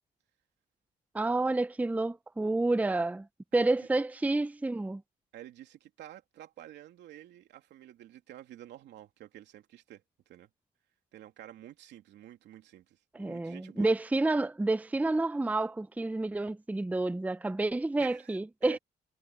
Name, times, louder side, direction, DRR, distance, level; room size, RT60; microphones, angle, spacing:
voice 1, 1.1-3.3 3.5-5.0 13.1-18.8, right 2 dB, 10° right, 0.5 m, -29 dB
voice 2, 5.3-10.5 11.1-13.9 18.0-18.8, right 12 dB, 85° right, 3.0 m, -50 dB
cardioid pair, 75°, 18 cm